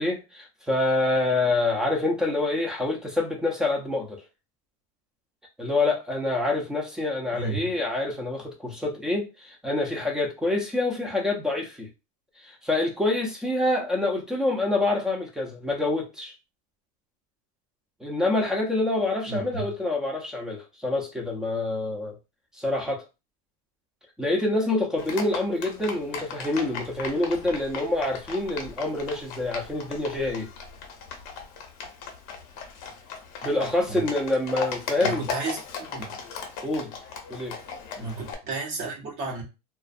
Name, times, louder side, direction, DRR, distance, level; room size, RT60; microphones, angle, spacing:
voice 1, 0.0-4.2 5.6-11.9 12.4-16.3 18.0-22.1 22.6-23.0 24.2-30.5 33.4-35.3 36.6-36.9 37.3-37.6, left 2 dB, 5° right, 0.5 m, -26 dB
voice 2, 7.3-7.7 19.3-19.7 33.9-34.0 35.0-36.2 38.0-39.4, right 3 dB, 45° right, 0.8 m, -33 dB
Livestock farm animals working animals, 25.0-38.3, left 5 dB, 50° left, 0.7 m, -37 dB
2.4 x 2.1 x 2.4 m
supercardioid pair, 145°, 18 cm